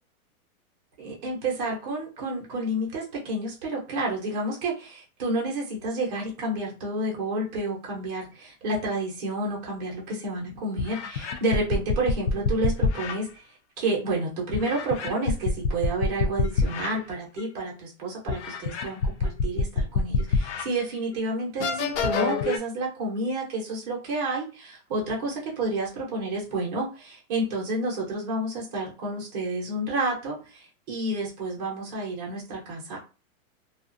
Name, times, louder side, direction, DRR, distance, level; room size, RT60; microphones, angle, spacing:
voice 1, 1.0-13.3 13.8-33.0, right 2 dB, 30° right, -2 dB, 0.9 m, -30 dB
sound 1, 10.1-10.2 10.8-13.2 14.5-16.9 17.4-17.5 18.3-20.7 21.1-21.2 21.6-22.6, left 4 dB, 55° left, 0.5 m, -26 dB
2.4 x 2.4 x 2.5 m, 0.32 s
supercardioid pair, 165°, 43 cm